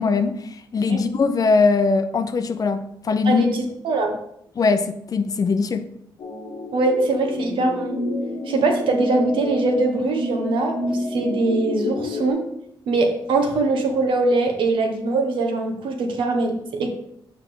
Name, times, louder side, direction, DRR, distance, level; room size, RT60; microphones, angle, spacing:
voice 1, 0.0-3.5 4.6-5.9, left 4 dB, 45° left, 9 dB, 0.6 m, -21 dB
voice 2, 3.2-4.2 6.7-7.9 8.5-12.5 12.9-16.9, right 3 dB, 75° right, 3 dB, 1.2 m, -22 dB
sound 1, 6.2-12.3, left 2 dB, 75° left, 1.2 m, -28 dB
6.9 x 4.8 x 3.8 m, 0.75 s
cardioid pair, 90°, 9 cm